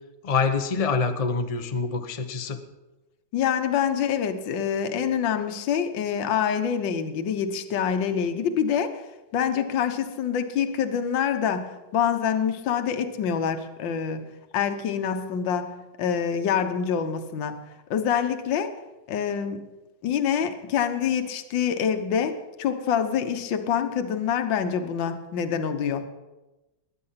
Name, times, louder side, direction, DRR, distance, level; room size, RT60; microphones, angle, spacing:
voice 1, 0.2-2.6, left 5 dB, 30° left, 6 dB, 0.6 m, -25 dB
voice 2, 3.3-9.0 9.3-14.2 14.5-15.7 16.0-17.6 17.9-18.7 19.1-19.6 20.0-26.1, left 8 dB, 65° left, 7 dB, 1.7 m, -26 dB
21.0 x 9.6 x 5.8 m, 1.1 s
omnidirectional pair, 2.3 m